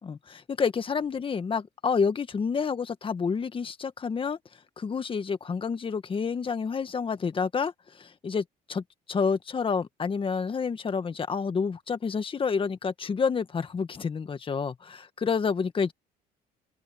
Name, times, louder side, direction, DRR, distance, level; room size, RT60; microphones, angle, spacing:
voice 1, 0.0-4.4 4.8-8.8 9.1-15.9, left 5 dB, 30° left, 1.6 m, -29 dB
open air
cardioid pair, 110°, 17 cm